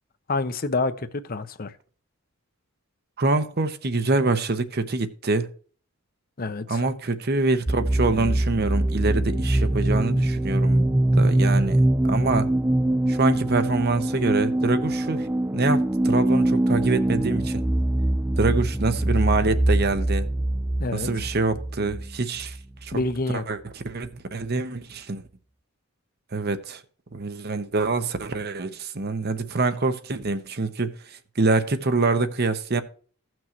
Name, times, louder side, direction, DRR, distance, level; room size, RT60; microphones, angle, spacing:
voice 1, 0.3-1.7 6.4-6.8 20.8-21.1 22.9-23.4, left 3 dB, 40° left, 0.7 m, -27 dB
voice 2, 3.2-5.5 6.7-10.9 11.2-12.5 13.1-15.3 15.5-17.6 18.4-20.3 20.9-22.6 22.8-23.0 23.3-25.2 26.3-26.8 27.1-31.0 31.4-32.8, right 3 dB, 45° right, 0.9 m, -25 dB
sound 1, 7.7-23.2, right 1 dB, 10° right, 0.4 m, -23 dB
16.0 x 6.2 x 3.0 m
head